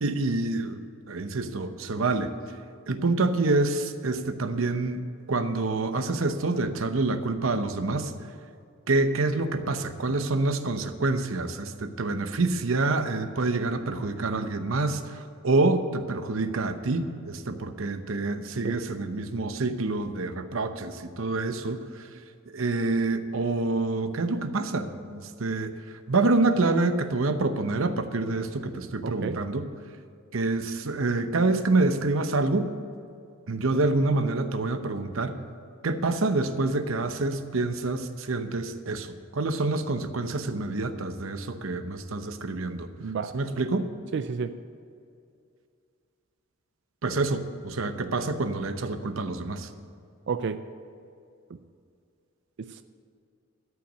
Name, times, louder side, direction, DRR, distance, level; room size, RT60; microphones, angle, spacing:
voice 1, 0.0-2.3 2.9-5.0 5.3-8.1 8.9-22.1 22.5-25.8 26.1-29.7 30.3-32.7 33.5-35.4 35.8-39.1 39.3-42.9 43.3-43.9 47.0-49.7, right 3 dB, 75° right, 9 dB, 0.8 m, -27 dB
voice 2, 29.0-29.4 43.0-43.3 44.1-44.6 50.3-50.6 52.6-52.8, right 5 dB, 60° right, 11 dB, 0.4 m, -31 dB
13.0 x 5.8 x 9.1 m, 2.4 s
head